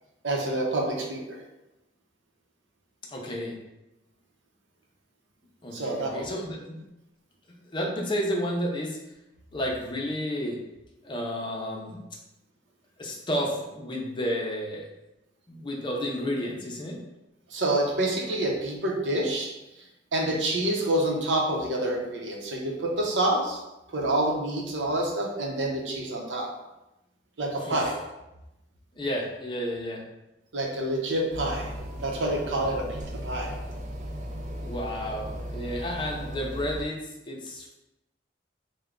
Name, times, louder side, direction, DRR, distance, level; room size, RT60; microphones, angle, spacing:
voice 1, 0.2-1.4 5.7-6.3 17.5-19.5 20.1-23.6 23.9-26.5 27.4-27.9 30.5-31.7 32.0-33.5, right 1 dB, 90° right, 0 dB, 0.7 m, -27 dB
voice 2, 3.1-3.6 5.6-6.8 7.5-9.0 9.5-10.6 11.0-12.0 13.0-14.9 15.5-17.0 27.6-27.9 28.9-30.0 32.6-32.7 34.6-37.0 37.3-37.7, equal, 25° left, -1 dB, 0.6 m, -31 dB
sound 1, 31.3-36.8, equal, 40° right, 0.4 m, -37 dB
3.3 x 2.2 x 3.7 m, 0.94 s
head